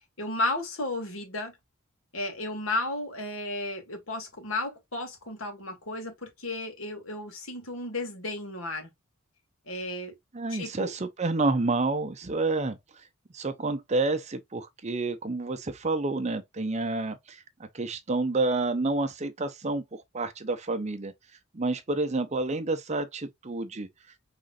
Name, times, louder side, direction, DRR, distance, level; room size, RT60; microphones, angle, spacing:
voice 1, 0.2-1.6 2.1-8.9 9.7-10.1 10.5-10.9, left 2 dB, 65° left, 2.1 m, -33 dB
voice 2, 10.3-12.8 13.3-21.1 21.5-23.9, right 3 dB, 30° right, 0.6 m, -29 dB
5.5 x 3.7 x 2.4 m
head